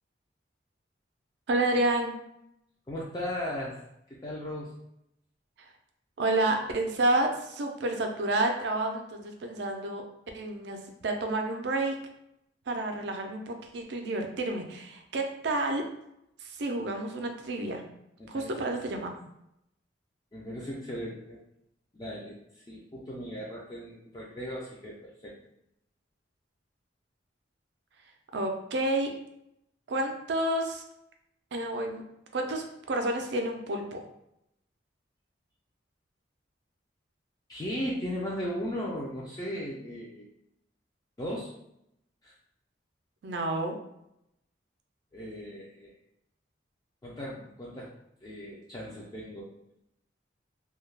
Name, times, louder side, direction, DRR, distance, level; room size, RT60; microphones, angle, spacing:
voice 1, 1.5-2.1 6.2-10.0 10.3-10.8 11.0-11.9 12.7-15.8 16.4-17.8 18.3-19.1 28.3-29.1 29.9-30.8 31.5-32.0 32.3-34.0 43.2-43.8, right 2 dB, 65° right, 4 dB, 0.4 m, -29 dB
voice 2, 2.9-3.7 4.1-4.7 18.2-19.1 20.3-21.4 21.9-25.3 37.5-40.3 41.2-41.5 42.2-42.3 45.1-45.9 47.0-47.9 48.2-49.5, equal, 20° left, -4 dB, 0.3 m, -37 dB
2.3 x 2.2 x 3.2 m, 0.80 s
head